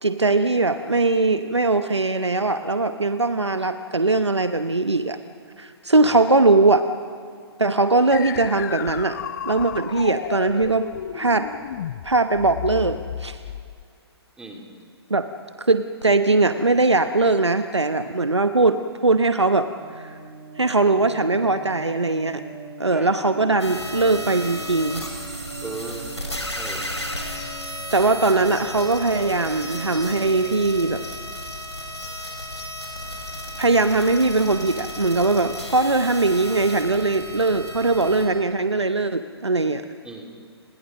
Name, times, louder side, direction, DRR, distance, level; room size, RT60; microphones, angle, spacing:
voice 1, 0.0-5.2 5.6-6.8 7.6-9.2 9.5-10.9 11.1-11.5 12.0-13.4 15.1-15.3 15.6-19.7 20.0-20.1 20.6-22.4 22.8-25.0 27.9-31.0 33.6-39.8, right 3 dB, 85° right, 9 dB, 1.0 m, -20 dB
sound 1, 8.1-13.8, left 10 dB, 40° left, 0.5 m, -33 dB
sound 2, 19.8-30.6, right 3 dB, 25° right, 5.4 m, -41 dB
sound 3, 23.6-38.3, left 1 dB, 90° left, 5.5 m, -34 dB
voice 2, 25.6-26.1 26.6-26.8 32.2-32.3 40.0-40.4, right 3 dB, 5° right, 1 dB, 2.9 m, -37 dB
29.5 x 21.0 x 6.4 m, 2.2 s
figure-of-eight pair, 130°, 14 cm